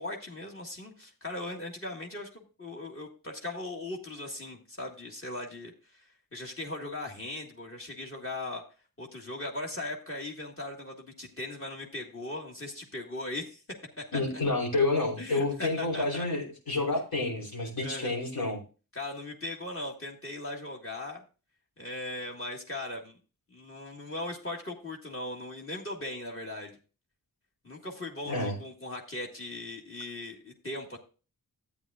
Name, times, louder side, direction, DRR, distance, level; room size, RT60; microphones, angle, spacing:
voice 1, 0.0-8.6 9.0-13.6 14.0-14.2 15.2-16.2 17.8-18.1 18.9-21.2 21.8-23.2 23.5-26.8 27.6-31.0, left 2 dB, 40° left, 2 dB, 1.7 m, -39 dB
voice 2, 14.1-18.6 28.3-28.6, left 2 dB, 85° left, -3 dB, 3.5 m, -29 dB
13.0 x 8.6 x 2.4 m, 0.34 s
wide cardioid pair, 90°, 34 cm